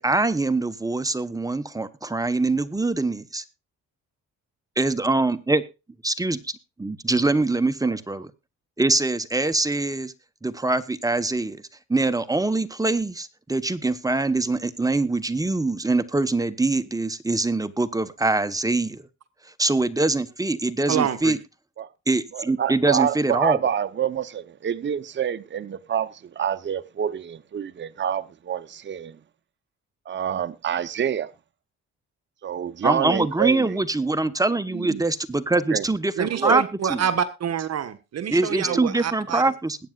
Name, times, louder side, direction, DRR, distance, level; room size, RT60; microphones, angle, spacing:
voice 1, 0.0-3.4 4.8-5.6 6.0-6.4 6.8-8.3 8.8-10.1 10.4-11.6 11.9-19.0 19.6-21.4 22.1-23.6 32.8-36.6 36.9-37.0 38.3-39.8, right 2 dB, 10° right, 1.0 m, -23 dB
voice 2, 20.9-21.4 36.2-39.4, right 8 dB, 55° right, 1.3 m, -26 dB
voice 3, 22.3-29.2 30.1-31.3 32.4-33.8 34.7-35.0 35.7-35.9 36.3-36.6 38.7-38.8, right 9 dB, 40° right, 0.8 m, -27 dB
21.0 x 9.1 x 2.4 m
cardioid pair, 90°, 30 cm